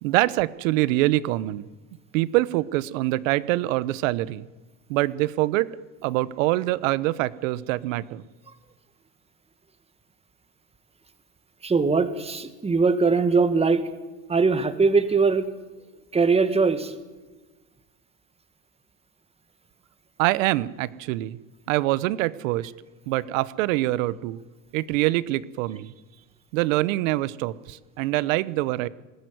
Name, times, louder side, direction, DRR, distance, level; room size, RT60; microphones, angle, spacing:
voice 1, 0.0-1.7 2.1-4.4 4.9-5.7 6.0-8.2 20.2-21.4 21.7-22.7 23.1-24.4 24.7-25.9 26.5-28.9, right 17 dB, 80° right, 19 dB, 1.0 m, -24 dB
voice 2, 11.6-13.8 14.3-15.5 16.1-16.9, right 4 dB, 15° right, 11 dB, 1.8 m, -21 dB
20.5 x 15.5 x 9.5 m, 1.2 s
supercardioid pair, 125°, 39 cm